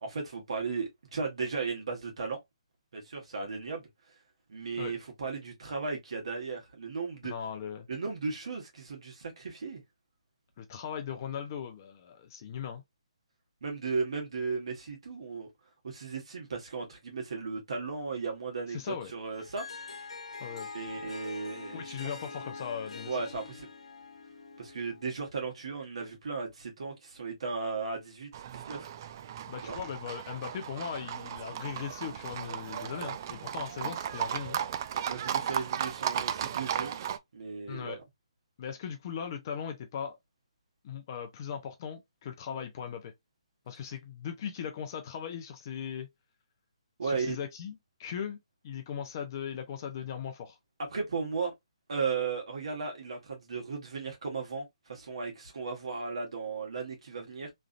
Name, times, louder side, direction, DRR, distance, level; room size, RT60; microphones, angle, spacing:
voice 1, 0.0-2.4 2.9-3.9 4.5-7.3 7.9-9.8 13.6-15.5 15.8-19.7 20.7-21.9 23.1-23.7 24.6-28.9 29.7-29.8 35.1-37.0 37.3-38.0 47.0-47.4 50.9-51.5 51.9-57.5, right 4 dB, 70° right, 1.2 m, -36 dB
voice 2, 7.2-7.9 10.6-12.8 18.7-19.1 20.4-20.7 21.7-23.2 29.5-34.6 37.7-38.0 38.6-40.2 40.8-43.1 43.7-46.1 47.0-48.4 48.6-50.6, left 8 dB, 35° left, 0.6 m, -38 dB
Harp, 19.3-25.1, left 4 dB, 90° left, 0.9 m, -44 dB
Livestock farm animals working animals, 28.3-37.2, right 9 dB, 35° right, 0.3 m, -35 dB
3.2 x 2.4 x 2.5 m
hypercardioid pair, 155°, 3 cm